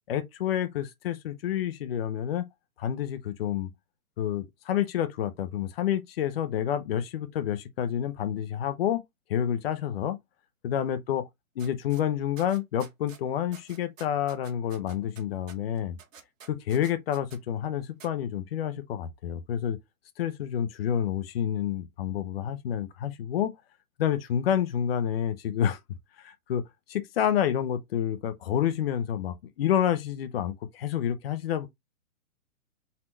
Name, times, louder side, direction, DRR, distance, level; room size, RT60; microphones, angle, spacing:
voice 1, 0.1-2.5 2.8-3.7 4.2-9.0 9.3-10.2 10.6-11.2 11.6-16.0 16.5-19.8 20.2-23.5 24.0-25.8 26.2-26.6 26.9-31.7, left 10 dB, 45° left, 0.7 m, -29 dB
sound 1, 11.6-12.0 12.4-13.2 13.5-17.4 18.0-18.1, right 7 dB, 65° right, 1.3 m, -50 dB
4.2 x 2.5 x 4.3 m
hypercardioid pair, 145°, 43 cm